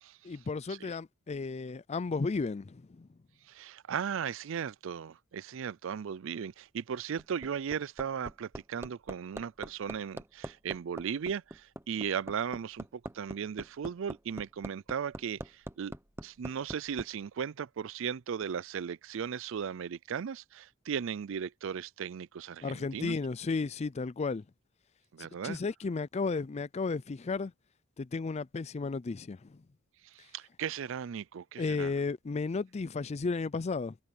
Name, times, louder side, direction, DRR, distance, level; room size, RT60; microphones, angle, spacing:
voice 1, 0.2-3.1 22.6-24.4 25.4-27.5 28.0-29.6 31.6-34.0, left 4 dB, 30° left, 0.4 m, -33 dB
voice 2, 3.5-15.9 16.2-23.2 25.1-25.6 30.0-31.9, right 7 dB, 65° right, 0.4 m, -37 dB
Hammer, 7.2-17.1 18.4-18.5, right 1 dB, 10° right, 1.1 m, -43 dB
head